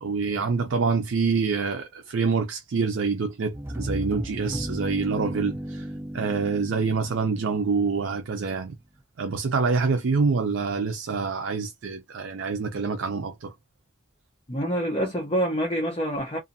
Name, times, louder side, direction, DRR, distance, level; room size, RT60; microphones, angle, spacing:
voice 1, 0.0-5.9 6.1-8.7 9.2-13.5, right 4 dB, 75° right, 0.5 m, -26 dB
sound 1, 3.5-8.4, right 1 dB, 10° right, 0.4 m, -35 dB
voice 2, 14.5-16.4, equal, 30° left, 0.7 m, -26 dB
2.5 x 2.5 x 2.6 m
head